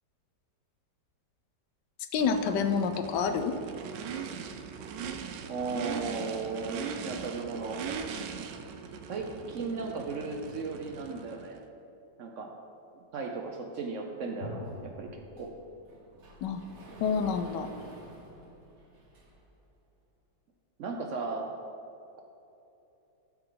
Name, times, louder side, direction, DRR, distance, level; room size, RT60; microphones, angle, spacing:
voice 1, 2.1-3.5 16.4-16.6 17.0-17.7, left 6 dB, 90° left, 8 dB, 1.3 m, -28 dB
Race car auto racing / Idling / Accelerating revving vroom, 2.2-11.6, right 6 dB, 85° right, 1.2 m, -40 dB
voice 2, 5.5-7.8 9.1-11.6 12.2-12.5 12.9-15.5 20.8-21.5, right 4 dB, 65° right, 2 dB, 0.8 m, -36 dB
sound 1, 14.4-16.3, left 1 dB, 70° left, 2.3 m, -47 dB
Sliding door, 14.6-19.6, right 1 dB, 45° right, 1.3 m, -50 dB
12.5 x 4.6 x 3.9 m, 2.9 s
omnidirectional pair, 1.8 m